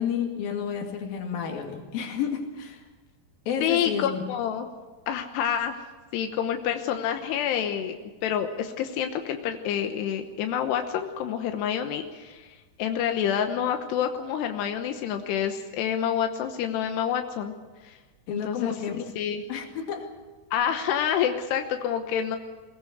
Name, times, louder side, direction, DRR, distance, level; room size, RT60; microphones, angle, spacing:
voice 1, 0.0-2.8 3.5-4.2 18.3-19.0 19.5-20.1, left 7 dB, 65° left, 3 dB, 4.0 m, -31 dB
voice 2, 3.6-4.7 5.1-5.8 6.1-8.0 8.2-17.5 17.8-18.0 18.3-18.7 19.2-19.4 20.5-22.4, left 9 dB, 90° left, 6 dB, 3.2 m, -28 dB
21.5 x 18.5 x 8.2 m, 1.3 s
omnidirectional pair, 4.8 m